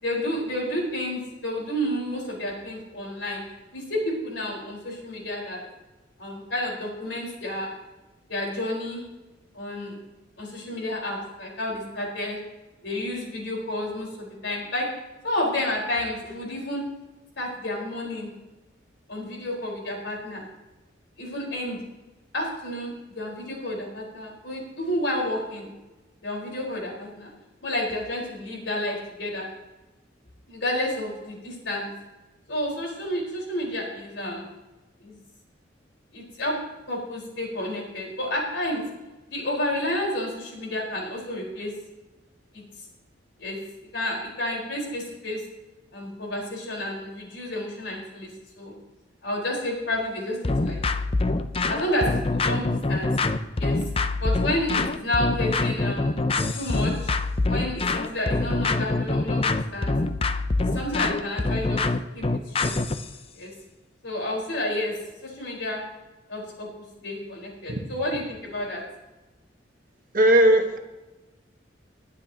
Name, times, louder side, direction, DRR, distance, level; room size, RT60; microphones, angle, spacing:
voice 1, 0.0-3.4 3.7-5.6 6.2-7.7 8.3-9.0 9.5-9.9 10.4-12.4 12.8-14.9 15.2-16.8 17.4-18.3 19.1-20.5 21.2-21.8 22.3-25.7 26.2-27.3 27.6-29.5 30.5-31.9 32.5-34.5 35.0-35.2 36.1-36.5 36.9-38.8 39.3-41.7 42.5-42.6 43.4-43.6 43.9-45.4 45.9-48.3 48.5-48.7 49.2-50.8 51.7-53.1 53.6-53.8 54.2-56.2 56.5-57.1 57.4-59.5 59.7-59.9 60.6-61.8 62.1-62.7 63.3-63.5 64.0-65.0 65.2-65.8 66.3-68.8, left 1 dB, 75° left, -2 dB, 4.7 m, -30 dB
sound 1, 50.4-63.1, left 3 dB, 30° left, 0.6 m, -25 dB
voice 2, 70.1-70.8, right 1 dB, 45° right, 4 dB, 1.5 m, -17 dB
21.0 x 9.9 x 3.0 m, 1.1 s
head